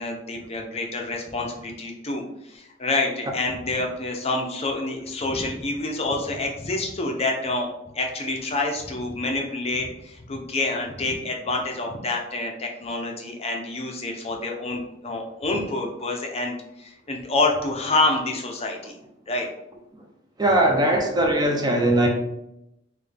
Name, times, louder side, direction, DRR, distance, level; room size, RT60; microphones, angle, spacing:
voice 1, 0.0-18.9 19.3-19.5, left 2 dB, 35° left, 0.5 m, -27 dB
voice 2, 20.4-22.1, right 1 dB, 20° right, 0.5 m, -20 dB
3.8 x 2.2 x 3.3 m
head